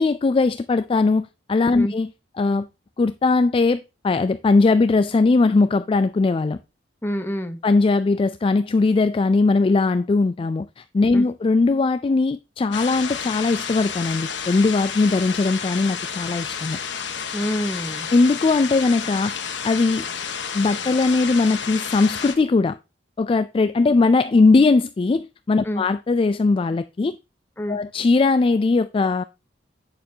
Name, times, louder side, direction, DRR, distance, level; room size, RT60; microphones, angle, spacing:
voice 1, 0.0-2.1 2.4-2.7 3.0-6.6 7.6-16.8 18.1-20.1 20.5-22.8 23.2-27.2 27.7-29.2, left 3 dB, 30° left, 0.3 m, -19 dB
voice 2, 7.0-7.6 11.1-11.3 17.3-18.1 25.6-25.8 27.6-27.8, equal, 10° left, 0.9 m, -27 dB
sound 1, 12.7-22.3, left 7 dB, 75° left, 1.4 m, -31 dB
8.7 x 6.8 x 2.8 m
head